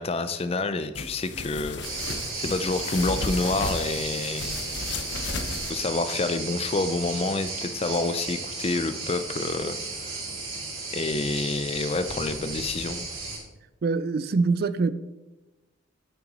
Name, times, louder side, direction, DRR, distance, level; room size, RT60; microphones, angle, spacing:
voice 1, 0.0-4.6 5.7-10.2 10.9-13.1, left 3 dB, 30° left, 0.4 m, -28 dB
sound 1, 1.0-5.7, left 3 dB, 55° left, 0.7 m, -34 dB
sound 2, 1.8-13.4, right 3 dB, 80° right, 2.6 m, -34 dB
voice 2, 13.8-14.9, right 4 dB, 50° right, 0.3 m, -24 dB
9.0 x 5.8 x 4.0 m
head